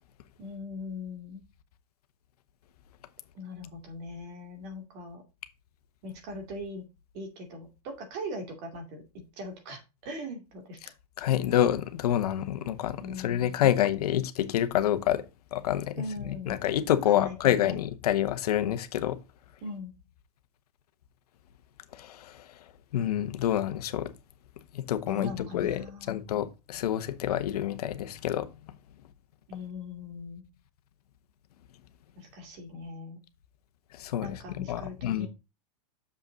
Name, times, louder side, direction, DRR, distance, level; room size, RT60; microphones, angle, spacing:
voice 1, 0.4-1.4 3.3-5.2 6.0-6.8 7.1-9.0 9.4-10.8 13.0-13.5 16.0-16.6 17.1-17.8 19.6-19.9 25.1-26.2 29.5-30.4 32.2-33.2 34.2-35.3, left 2 dB, 40° right, 2.4 m, -40 dB
voice 2, 11.2-15.2 15.5-19.2 22.0-22.4 22.9-24.1 24.7-28.5 34.0-35.3, left 11 dB, 75° left, 1.2 m, -28 dB
7.1 x 5.8 x 3.9 m
supercardioid pair, 160°, 20 cm